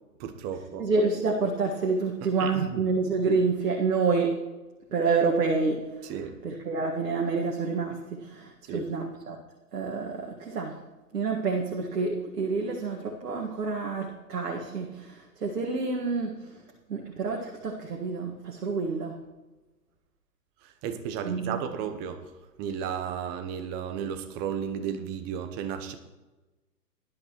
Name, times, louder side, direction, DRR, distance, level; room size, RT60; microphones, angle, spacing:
voice 1, 0.2-0.9 2.4-2.9 6.0-6.4 8.7-8.8 20.6-22.3 22.6-26.0, right 8 dB, 20° right, 0.9 m, -34 dB
voice 2, 0.8-4.3 4.9-6.1 6.4-9.4 9.7-10.8 11.1-16.5 16.9-19.1 21.2-21.6, right 4 dB, 65° right, 1.9 m, -28 dB
18.5 x 11.0 x 3.1 m
figure-of-eight pair, 125°, 49 cm